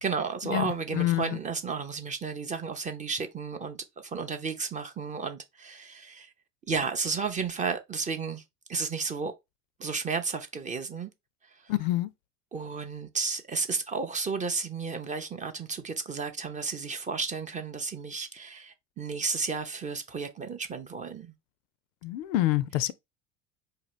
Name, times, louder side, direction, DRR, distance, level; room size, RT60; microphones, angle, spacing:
voice 1, 0.0-3.8 4.0-6.3 6.7-8.4 8.7-9.3 9.8-11.1 11.5-11.7 12.5-21.3, right 5 dB, 20° right, 0.4 m, -33 dB
voice 2, 11.7-12.1 22.0-22.9, left 15 dB, 65° left, 0.5 m, -26 dB
4.1 x 2.8 x 3.0 m
hypercardioid pair, 80°, 43 cm